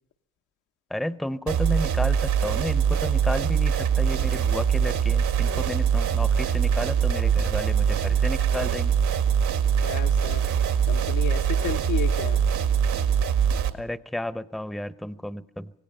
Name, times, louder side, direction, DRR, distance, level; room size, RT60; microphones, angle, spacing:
voice 1, 0.9-8.9 13.8-15.7, left 1 dB, ahead, 15 dB, 0.7 m, -32 dB
sound 1, 1.5-13.7, right 7 dB, 80° right, 2.0 m, -23 dB
voice 2, 9.8-10.5 10.8-12.4, left 10 dB, 85° left, 5 dB, 1.2 m, -33 dB
26.0 x 18.5 x 5.4 m, 0.75 s
cardioid pair, 90°, 30 cm